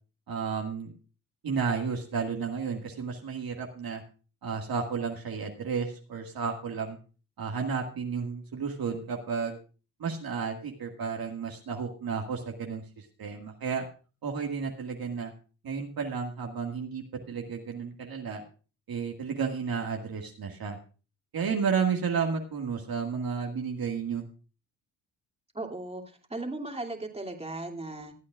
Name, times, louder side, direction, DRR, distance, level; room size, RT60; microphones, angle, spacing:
voice 1, 0.3-0.9 1.4-4.0 4.4-7.0 7.4-9.6 10.0-13.9 14.2-15.3 15.6-18.4 18.9-20.8 21.3-24.2, right 6 dB, 55° right, 2 dB, 2.0 m, -32 dB
voice 2, 25.5-28.1, right 2 dB, 15° right, 2 dB, 2.7 m, -37 dB
24.5 x 8.4 x 2.5 m, 0.35 s
supercardioid pair, 55°, 44 cm